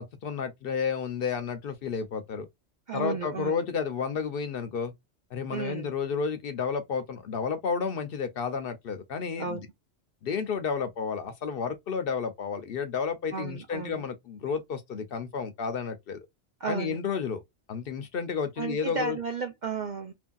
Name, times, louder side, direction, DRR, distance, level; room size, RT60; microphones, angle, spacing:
voice 1, 0.0-2.5 2.9-4.9 5.3-9.6 10.2-16.2 16.7-17.4 17.7-19.2, left 6 dB, 60° left, 0.7 m, -31 dB
voice 2, 2.9-3.5 5.5-5.9 9.4-9.6 13.3-14.0 16.6-17.0 18.6-20.1, right 5 dB, 60° right, 0.5 m, -33 dB
3.0 x 2.6 x 2.2 m
omnidirectional pair, 1.2 m